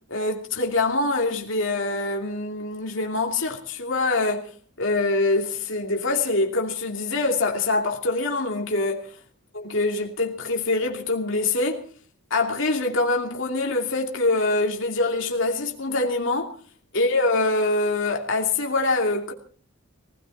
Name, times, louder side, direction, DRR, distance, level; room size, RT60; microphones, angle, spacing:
voice 1, 0.1-4.5 4.8-9.1 9.5-11.8 12.3-16.6 16.9-19.3, left 2 dB, 65° left, 2.8 m, -24 dB
19.0 x 16.5 x 4.2 m
head